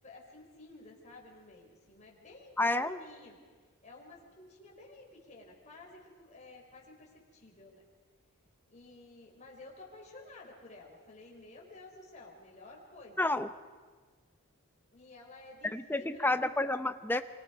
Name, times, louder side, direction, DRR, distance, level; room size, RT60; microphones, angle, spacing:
voice 1, 0.0-3.4 3.8-7.9 8.7-13.2 14.9-16.4, left 2 dB, 30° left, -2 dB, 5.1 m, -53 dB
voice 2, 2.6-3.0 13.2-13.5 15.7-17.2, left 2 dB, 10° left, 10 dB, 0.7 m, -30 dB
26.5 x 25.5 x 5.4 m, 1.5 s
head